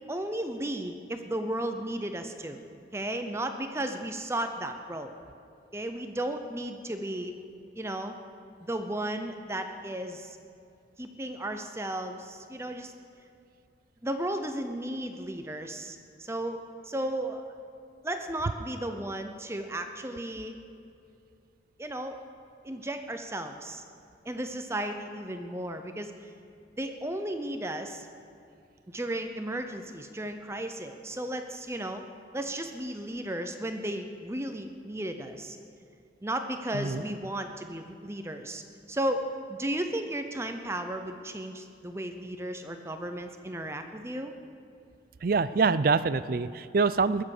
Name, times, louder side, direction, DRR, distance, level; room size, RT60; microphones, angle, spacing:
voice 1, 0.1-2.6 2.9-5.1 5.7-7.3 7.8-8.2 8.6-10.4 11.0-12.9 14.0-16.6 16.8-17.4 18.0-20.6 21.8-22.2 22.6-23.8 24.2-26.3 26.8-28.1 28.9-32.0 32.3-35.6 36.2-38.6 38.9-39.2 39.5-44.3, right 1 dB, 15° right, 6 dB, 0.7 m, -34 dB
voice 2, 45.2-47.2, right 4 dB, 50° right, 15 dB, 0.4 m, -25 dB
21.5 x 7.4 x 6.6 m, 2.5 s
head